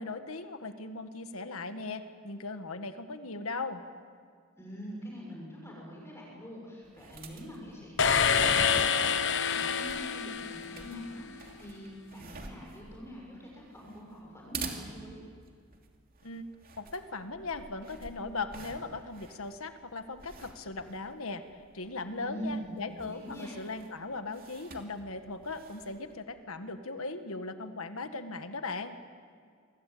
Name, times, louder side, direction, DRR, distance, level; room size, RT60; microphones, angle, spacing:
voice 1, 0.0-3.8 16.2-16.5 16.8-21.4 21.7-29.0, left 3 dB, 80° left, 8 dB, 1.7 m, -38 dB
voice 2, 4.6-15.2 22.2-22.7 23.0-23.6, equal, 15° left, -3 dB, 6.1 m, -44 dB
sound 1, 6.8-26.2, right 4 dB, 40° right, 3.1 m, -49 dB
sound 2, 8.0-11.1, left 6 dB, 55° left, 1.3 m, -27 dB
27.5 x 23.5 x 8.6 m, 2.2 s
head